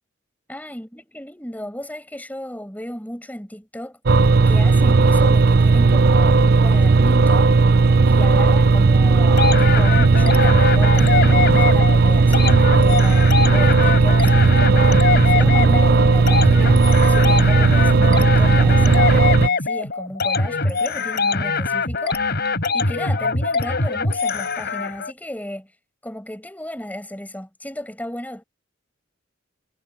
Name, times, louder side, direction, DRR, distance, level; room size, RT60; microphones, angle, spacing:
voice 1, 0.5-4.0 4.5-7.6 8.1-22.4 22.7-25.7 26.0-28.4, left 1 dB, 10° left, 7.1 m, -34 dB
sound 1, 4.1-19.5, right 3 dB, 50° right, 0.6 m, -15 dB
sound 2, 9.4-25.1, left 4 dB, 55° left, 4.5 m, -23 dB
head